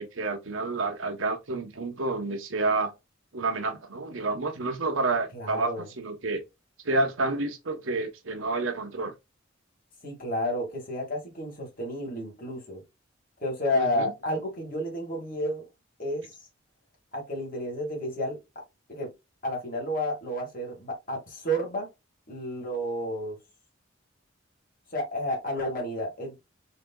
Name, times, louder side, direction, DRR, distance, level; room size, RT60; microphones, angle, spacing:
voice 1, 0.0-2.9 3.3-6.4 6.8-9.1 13.7-14.1, right 3 dB, 80° right, 1.0 m, -29 dB
voice 2, 5.3-5.9 10.0-12.8 13.4-15.7 16.0-16.3 17.1-18.4 18.9-19.1 19.4-21.9 22.3-23.4 24.9-26.4, equal, 45° left, 2.0 m, -31 dB
5.0 x 2.8 x 2.3 m
head